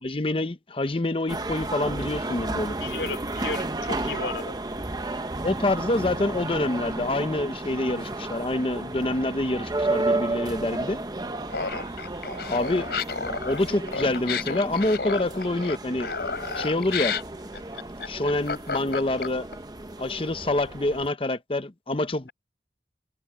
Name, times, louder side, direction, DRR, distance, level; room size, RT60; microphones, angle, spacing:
voice 1, 0.0-2.7 5.4-11.0 12.5-12.9 13.4-16.1 16.5-17.2 18.1-19.4 20.0-22.3, left 2 dB, 30° left, 0.8 m, -26 dB
sound 1, 1.3-21.1, right 2 dB, 20° right, 0.9 m, -33 dB
voice 2, 2.8-4.6 11.6-12.0, left 3 dB, 85° left, 3.6 m, -34 dB
Laughter, 11.5-19.5, left 5 dB, 70° left, 3.7 m, -32 dB
head